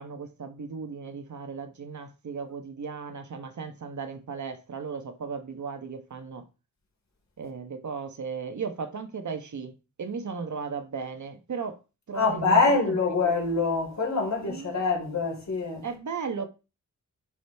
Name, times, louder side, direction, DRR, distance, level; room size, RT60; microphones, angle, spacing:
voice 1, 0.0-6.5 7.4-9.7 10.0-11.8 12.1-13.0 14.4-14.8 15.8-16.5, right 5 dB, 65° right, 1.1 m, -36 dB
voice 2, 12.1-15.8, left 4 dB, 60° left, 3.2 m, -25 dB
11.0 x 5.1 x 3.5 m
wide cardioid pair, 155°, 32 cm